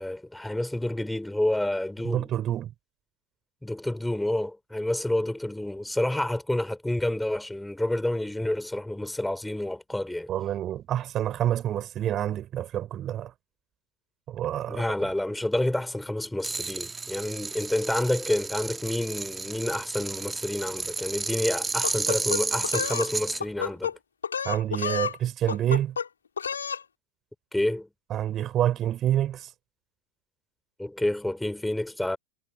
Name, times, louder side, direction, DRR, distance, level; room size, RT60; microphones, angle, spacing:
voice 1, 0.0-2.3 3.6-10.3 14.7-23.9 27.5-27.9 30.8-32.2, left 1 dB, 5° left, 5.9 m, -29 dB
voice 2, 2.0-2.7 10.3-13.3 14.3-14.8 24.4-26.0 28.1-29.5, right 11 dB, 30° right, 7.7 m, -27 dB
sound 1, 16.4-23.4, right 4 dB, 10° right, 2.9 m, -32 dB
sound 2, 21.8-23.1 23.4-23.9 24.2-25.2 25.5-26.1 26.4-26.8, left 6 dB, 70° left, 6.3 m, -30 dB
figure-of-eight pair, 90°, 0 cm